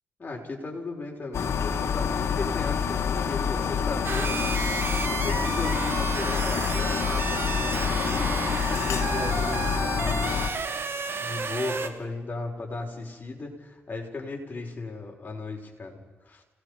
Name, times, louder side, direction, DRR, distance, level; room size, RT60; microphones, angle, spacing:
voice 1, 0.2-4.8 5.0-10.6 11.2-16.4, left 3 dB, 35° left, -1 dB, 5.8 m, -36 dB
sound 1, 1.3-10.5, left 7 dB, 70° left, 1.5 m, -27 dB
sound 2, 4.0-11.9, right 4 dB, 55° right, 2.0 m, -32 dB
27.5 x 18.5 x 5.3 m, 1.2 s
cardioid pair, 70°, 5 cm